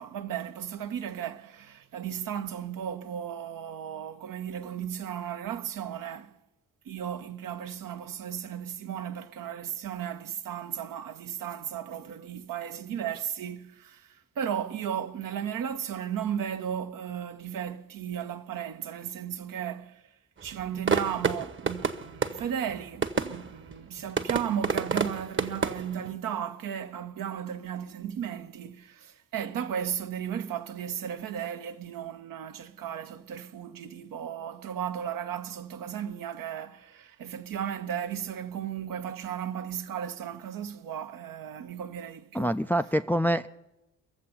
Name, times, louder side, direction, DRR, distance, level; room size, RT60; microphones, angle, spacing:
voice 1, 0.0-6.4 6.8-20.0 20.4-42.6, right 9 dB, 55° right, 0.9 m, -35 dB
sound 1, 20.4-26.1, right 5 dB, 30° right, 1.2 m, -31 dB
voice 2, 42.3-43.5, equal, 5° left, 0.4 m, -25 dB
22.5 x 7.6 x 5.8 m
hypercardioid pair, 40°, 39 cm